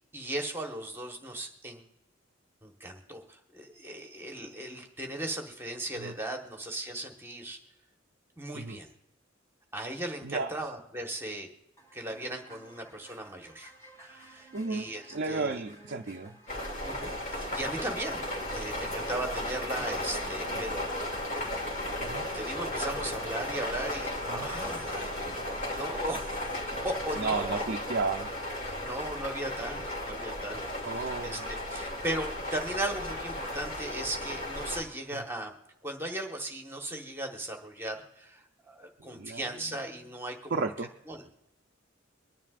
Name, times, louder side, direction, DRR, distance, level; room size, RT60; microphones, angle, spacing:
voice 1, 0.1-1.8 2.6-7.6 8.4-8.9 9.7-11.5 11.9-13.7 14.0-15.6 16.8-18.2 18.5-21.5 22.2-26.3 26.8-27.6 28.6-31.4 31.7-35.5 35.8-40.5 41.1-41.2, right 1 dB, 10° right, 2 dB, 1.4 m, -37 dB
sound 1, 11.8-23.8, right 2 dB, 15° left, 3.2 m, -54 dB
voice 2, 14.5-16.4 22.0-22.2 24.3-24.5 26.8-26.9 27.2-28.3 30.9-31.4 35.1-35.2 39.0-39.8 40.5-40.9, right 4 dB, 55° right, 2 dB, 0.6 m, -33 dB
sound 2, 16.5-34.8, left 1 dB, 40° left, 2.5 m, -35 dB
24.0 x 11.0 x 2.5 m, 0.91 s
head